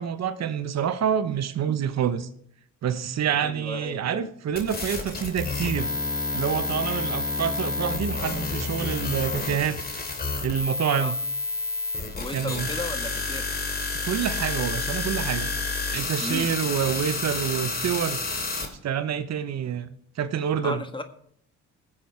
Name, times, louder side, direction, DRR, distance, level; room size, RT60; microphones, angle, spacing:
voice 1, 0.0-2.3 2.8-5.9 6.3-9.8 10.4-11.2 12.3-12.7 14.0-15.5 15.9-18.2 18.8-20.8, right 8 dB, 60° right, 11 dB, 1.1 m, -27 dB
voice 2, 3.4-4.3 10.9-11.1 12.2-13.5 16.2-16.5 20.6-21.0, left 2 dB, 15° left, 8 dB, 1.5 m, -35 dB
sound 1, 4.6-18.7, left 3 dB, 30° left, 2.8 m, -29 dB
19.5 x 7.5 x 4.6 m, 0.67 s
cardioid pair, 90°, 30 cm